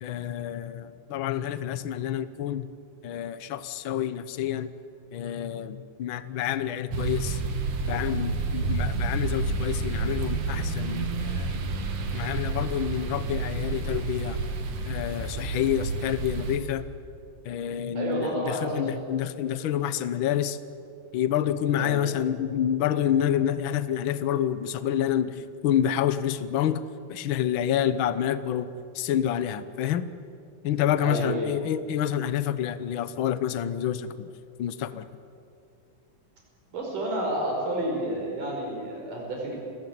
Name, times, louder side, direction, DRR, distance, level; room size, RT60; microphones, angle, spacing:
voice 1, 0.0-2.7 3.0-4.7 5.1-7.4 7.9-11.5 12.1-14.4 14.9-16.9 17.4-20.6 21.1-26.8 27.1-30.1 30.6-34.3 34.6-35.1, left 10 dB, 75° left, 13 dB, 1.1 m, -28 dB
sound 1, 6.9-16.6, right 3 dB, 55° right, 2.9 m, -30 dB
voice 2, 18.0-18.9 21.7-22.0 31.0-31.5 36.7-39.6, right 1 dB, 85° right, -1 dB, 6.9 m, -30 dB
30.0 x 17.0 x 9.5 m, 2.6 s
omnidirectional pair, 3.6 m